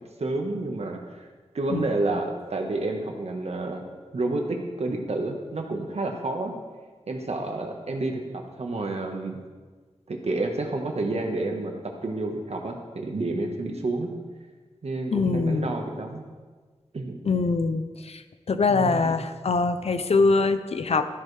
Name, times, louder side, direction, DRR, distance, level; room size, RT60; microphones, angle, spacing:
voice 1, 0.2-1.3 1.5-3.9 4.1-6.5 7.1-9.4 10.1-14.1 14.8-16.2 16.9-17.2 18.7-19.2, right 2 dB, 65° right, 2 dB, 1.5 m, -29 dB
voice 2, 15.1-15.7 17.3-18.2 18.5-21.1, left 4 dB, 65° left, 10 dB, 0.6 m, -23 dB
13.5 x 11.0 x 3.4 m, 1.4 s
wide cardioid pair, 110°, 12 cm